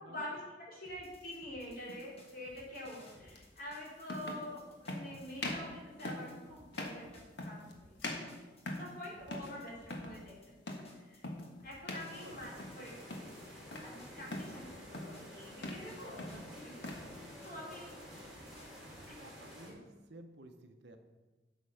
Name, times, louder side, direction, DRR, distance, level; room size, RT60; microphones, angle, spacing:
voice 1, 0.7-10.7 11.0-11.3 11.6-17.9 19.1-19.2, left 1 dB, 55° left, -4 dB, 3.5 m, -47 dB
sound 1, 0.9-5.6 6.0-14.8 15.1-19.1, left 1 dB, 35° left, 1.8 m, -60 dB
sound 2, 1.8-2.0 3.4-3.5 4.0-4.5 4.9-5.1 5.4-5.7 6.1-6.3 6.7-7.0 7.4-7.7 8.0-9.0 9.3-9.6 9.8-10.2 10.7-10.9 11.2-11.5 11.9-12.1 12.4-12.8 13.1-13.9 14.3-14.6 14.9-15.2 15.5-15.9 16.2-17.1, left 2 dB, 75° left, 1.5 m, -42 dB
voice 2, 12.0-12.4 18.1-18.3 19.2-21.0, right 1 dB, 65° right, 6 dB, 0.9 m, -54 dB
sound 3, 12.1-19.7, equal, ahead, 3.2 m, -51 dB
8.2 x 7.3 x 5.7 m, 1.2 s
head